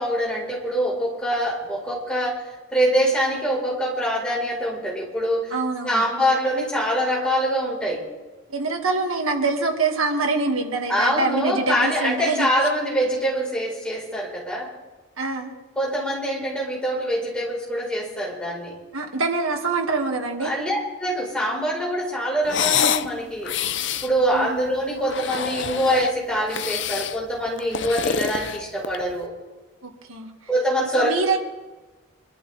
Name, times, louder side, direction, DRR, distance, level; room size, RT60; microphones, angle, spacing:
voice 1, 0.0-2.4 2.7-5.5 5.8-8.0 10.9-14.7 15.8-18.7 20.4-23.5 24.0-29.3 30.5-31.1, equal, 5° left, -5 dB, 4.7 m, -24 dB
voice 2, 5.5-6.1 8.5-12.5 15.2-15.5 18.9-20.5 24.3-24.6 29.8-30.3 31.0-31.4, right 3 dB, 90° right, 2 dB, 2.2 m, -25 dB
sound 1, 22.4-23.1 23.4-24.1 25.0-26.1 26.5-27.2 27.6-29.1, left 7 dB, 60° left, 0.6 m, -26 dB
25.5 x 13.0 x 3.5 m, 1.2 s
head